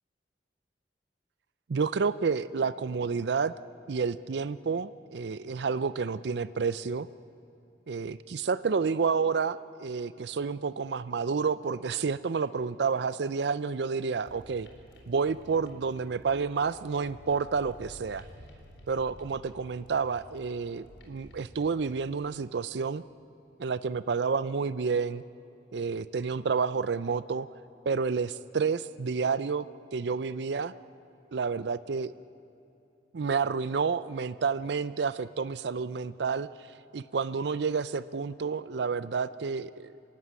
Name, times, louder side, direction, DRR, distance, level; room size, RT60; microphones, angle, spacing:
voice 1, 1.7-3.5 3.9-7.1 7.9-14.7 15.1-18.2 18.9-23.0 23.6-25.2 25.7-27.5 27.9-29.7 29.9-30.7 31.3-32.1 33.1-36.5 36.9-39.9, right 5 dB, 70° right, 15 dB, 0.5 m, -30 dB
sound 1, 14.3-22.0, equal, 90° left, 3.8 m, -52 dB
26.5 x 16.0 x 9.5 m, 2.9 s
head